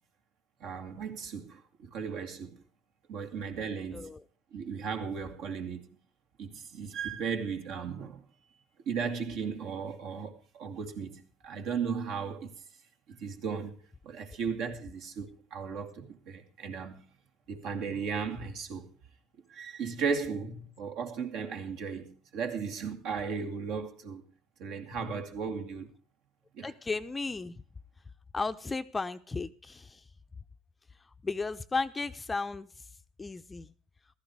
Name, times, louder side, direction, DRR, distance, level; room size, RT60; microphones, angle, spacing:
voice 1, 0.6-2.6 3.1-4.1 4.5-6.0 6.4-8.2 8.9-12.5 13.1-13.8 14.0-17.1 17.5-18.9 19.5-24.2 24.6-25.9 26.5-26.7, right 6 dB, 60° right, 2.4 m, -36 dB
voice 2, 26.6-27.5 28.3-30.0 31.2-32.7 33.2-33.7, left 4 dB, 20° left, 0.7 m, -34 dB
15.0 x 14.0 x 4.8 m
hypercardioid pair, 70°, 0 cm